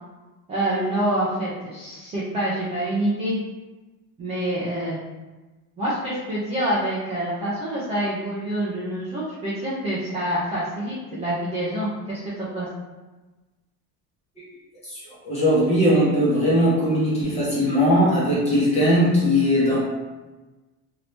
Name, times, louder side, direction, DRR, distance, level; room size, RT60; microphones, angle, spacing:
voice 1, 0.5-3.4 4.2-5.0 5.8-12.7, right 1 dB, 15° right, -9 dB, 0.4 m, -26 dB
voice 2, 14.8-19.8, equal, 15° left, -8 dB, 0.9 m, -20 dB
2.9 x 2.6 x 3.2 m, 1.2 s
cardioid pair, 175°, 40 cm